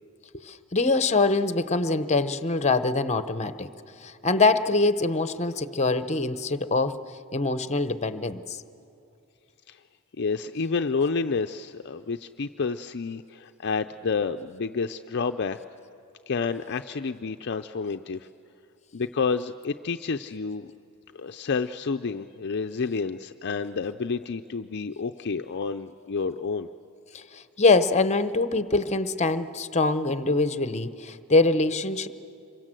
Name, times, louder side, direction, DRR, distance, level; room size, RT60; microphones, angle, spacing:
voice 1, 0.3-3.7 4.0-7.0 7.3-8.6 27.1-32.1, left 3 dB, 30° left, 12 dB, 0.9 m, -24 dB
voice 2, 10.2-15.6 16.3-18.3 18.9-20.7 21.1-26.7, left 4 dB, 50° left, 8 dB, 0.5 m, -29 dB
26.5 x 23.5 x 7.6 m, 2.6 s
head